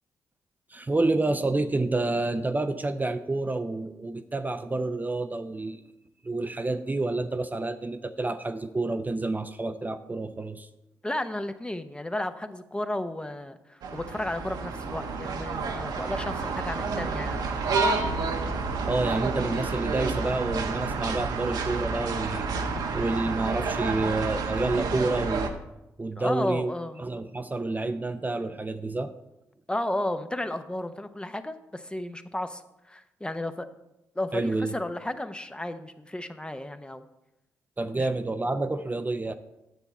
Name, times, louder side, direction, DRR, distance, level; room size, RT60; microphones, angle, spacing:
voice 1, 0.7-5.8 6.2-10.7 18.9-22.6 22.9-25.6 26.0-26.7 27.0-29.1 34.3-34.7 37.8-39.3, right 2 dB, 25° right, 8 dB, 0.5 m, -29 dB
voice 2, 11.0-17.4 26.1-27.0 29.7-32.6 32.9-33.7 34.2-37.0 38.0-38.1, left 1 dB, 15° left, 9 dB, 0.7 m, -33 dB
sound 1, 13.8-25.5, right 4 dB, 75° right, 0.9 m, -30 dB
9.2 x 6.9 x 4.1 m, 0.92 s
supercardioid pair, 50°, 7 cm